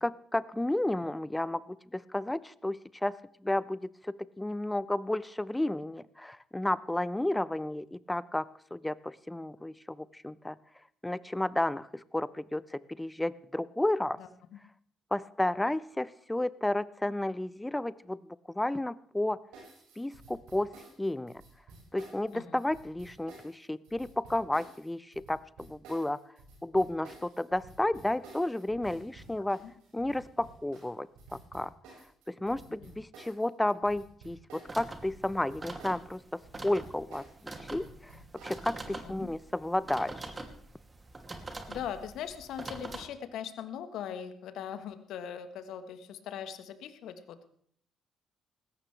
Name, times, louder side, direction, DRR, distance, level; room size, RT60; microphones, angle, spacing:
voice 1, 0.0-8.5 8.7-10.6 11.0-14.2 15.1-19.4 20.0-20.7 21.0-21.4 21.9-26.2 26.6-29.6 29.9-31.7 32.3-37.2 37.6-40.3, left 1 dB, 10° left, 18 dB, 0.8 m, -32 dB
sound 1, 19.5-34.9 35.1-38.6, right 3 dB, 70° right, 6.1 m, -53 dB
sound 2, 34.7-43.0, right 2 dB, 30° right, 2.7 m, -44 dB
voice 2, 38.9-39.3 41.7-47.5, left 9 dB, 65° left, 10 dB, 1.5 m, -40 dB
20.0 x 16.5 x 3.4 m, 0.62 s
hypercardioid pair, 45°, 0 cm